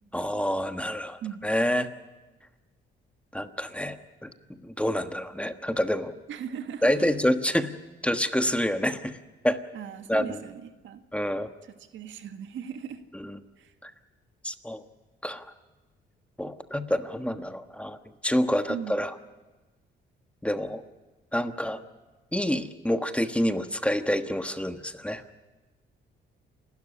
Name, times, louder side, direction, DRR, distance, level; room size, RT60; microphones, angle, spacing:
voice 1, 0.1-1.9 3.3-4.3 4.6-6.1 6.8-7.7 8.0-9.2 9.4-9.6 10.1-10.4 11.1-11.5 13.1-13.4 13.8-13.9 14.4-14.8 15.2-15.5 16.4-18.0 18.2-19.1 20.4-20.8 21.3-21.8 22.3-25.2, equal, 5° left, 8 dB, 1.3 m, -27 dB
voice 2, 6.3-7.1 9.7-11.0 11.6-13.0 13.6-13.7 18.7-19.0, right 8 dB, 75° right, 7 dB, 1.8 m, -38 dB
28.5 x 12.5 x 10.0 m, 1.2 s
cardioid pair, 90°, 20 cm